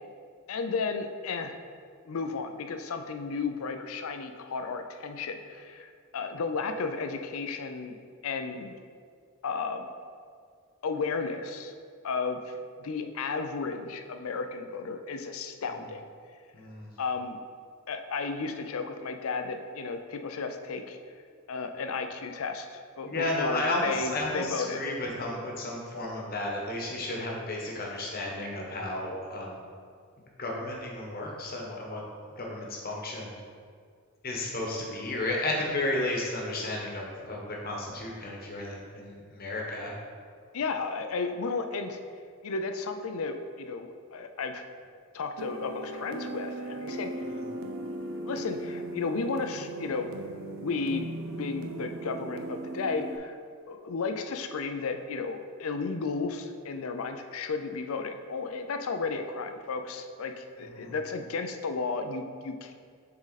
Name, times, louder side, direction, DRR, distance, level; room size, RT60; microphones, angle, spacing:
voice 1, 0.5-1.5 2.1-8.0 8.2-8.7 9.4-9.9 10.8-11.7 12.0-16.0 17.0-17.4 17.9-21.0 21.5-24.8 40.5-42.0 42.4-44.6 45.1-47.1 48.3-50.1 50.5-53.4 53.7-62.7, left 4 dB, 65° left, 7 dB, 0.5 m, -33 dB
voice 2, 16.5-16.9 23.0-29.6 30.4-32.0 32.4-33.4 34.2-39.9 47.2-47.4 60.6-60.9, left 1 dB, 40° left, -2 dB, 1.1 m, -33 dB
sound 1, 45.4-53.2, right 2 dB, 65° right, 0.5 m, -38 dB
7.2 x 3.8 x 4.0 m, 2.1 s
head